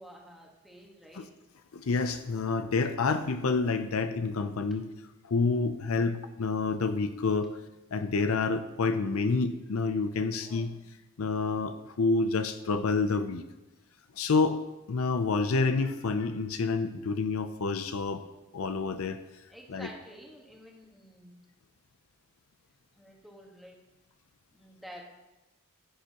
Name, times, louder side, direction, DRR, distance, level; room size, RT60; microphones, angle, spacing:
voice 1, 0.0-1.3 10.4-10.7 19.5-21.4 22.9-23.8 24.5-25.0, equal, ahead, -2 dB, 1.4 m, -50 dB
voice 2, 1.7-4.9 5.3-7.5 7.9-10.7 11.2-13.4 14.2-14.6 14.9-18.2 18.5-19.2 19.7-19.9, left 4 dB, 70° left, 9 dB, 0.5 m, -28 dB
14.0 x 6.7 x 2.9 m, 1.0 s
head